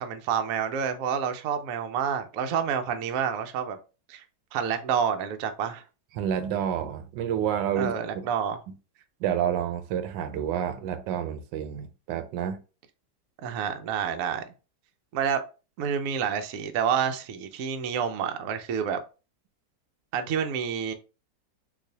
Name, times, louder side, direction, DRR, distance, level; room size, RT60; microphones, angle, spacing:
voice 1, 0.0-3.8 4.1-4.2 4.5-5.8 7.8-8.6 13.4-14.4 15.1-15.4 15.8-19.0 20.1-20.9, right 7 dB, 70° right, 0.8 m, -28 dB
voice 2, 6.1-8.3 8.7-8.8 9.2-12.6, right 9 dB, 85° right, 1.3 m, -29 dB
4.0 x 2.6 x 2.7 m
omnidirectional pair, 1.9 m